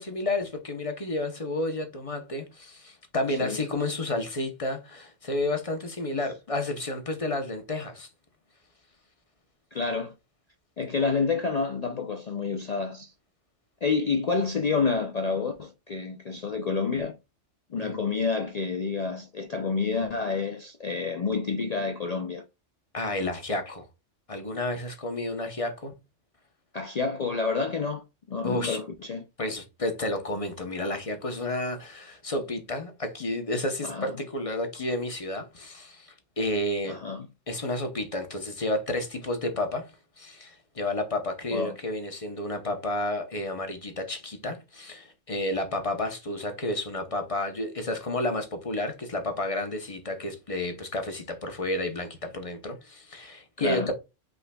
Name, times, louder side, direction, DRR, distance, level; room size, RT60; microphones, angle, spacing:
voice 1, 0.0-8.1 17.8-18.0 22.9-23.8 24.3-25.9 28.4-28.8 29.4-37.0 37.5-39.9 40.2-53.9, left 1 dB, 30° left, 0.9 m, -31 dB
voice 2, 3.3-3.6 9.7-10.1 10.8-13.1 13.8-17.2 17.7-22.4 26.7-29.3 33.8-34.2 36.8-37.3 41.5-41.8 53.6-53.9, left 4 dB, 50° left, 0.5 m, -29 dB
5.6 x 3.8 x 2.2 m
omnidirectional pair, 1.2 m